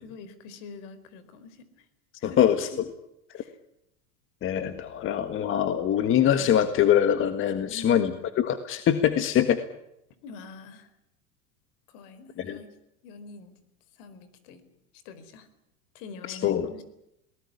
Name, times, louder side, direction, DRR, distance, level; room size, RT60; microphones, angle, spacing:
voice 1, 0.0-1.7 2.2-2.8 3.3-3.6 7.7-8.2 10.2-10.9 11.9-12.7 13.0-13.6 14.0-14.6 15.0-15.5 15.9-16.8, left 4 dB, 55° left, 13 dB, 4.6 m, -44 dB
voice 2, 2.2-2.7 4.4-8.1 8.4-9.6 12.4-12.6 16.3-16.7, left 10 dB, 30° left, 10 dB, 1.6 m, -23 dB
22.5 x 19.0 x 9.8 m, 0.82 s
supercardioid pair, 140°, 42 cm